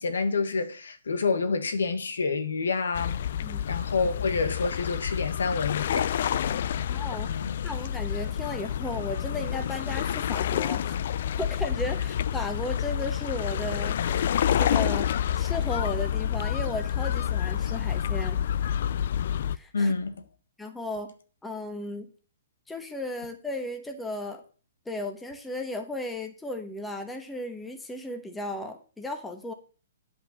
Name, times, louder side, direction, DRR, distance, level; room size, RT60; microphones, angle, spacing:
voice 1, 0.0-3.2 3.7-6.2 7.2-7.6 19.7-20.1, left 4 dB, 90° left, 1.5 m, -28 dB
sound 1, 2.9-19.6, left 9 dB, 60° left, 0.4 m, -28 dB
voice 2, 6.9-7.3 7.6-11.0 11.4-15.1 15.4-18.4 19.5-19.9 20.6-21.1 21.4-22.1 22.7-24.4 24.8-29.5, left 2 dB, 5° left, 1.2 m, -35 dB
8.9 x 5.3 x 7.3 m
hypercardioid pair, 150°, 0 cm